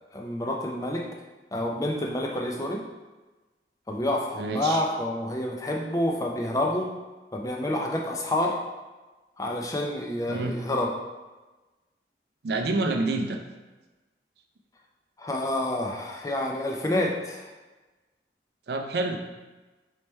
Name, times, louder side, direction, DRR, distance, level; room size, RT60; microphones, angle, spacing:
voice 1, 0.1-1.1 1.5-2.8 3.9-6.9 7.3-8.6 9.4-10.9 15.2-17.5, left 1 dB, 20° left, 0 dB, 0.4 m, -28 dB
voice 2, 4.4-4.8 10.3-10.5 12.4-13.4 18.7-19.2, right 2 dB, 65° right, 4 dB, 0.4 m, -27 dB
3.3 x 3.2 x 4.2 m, 1.2 s
head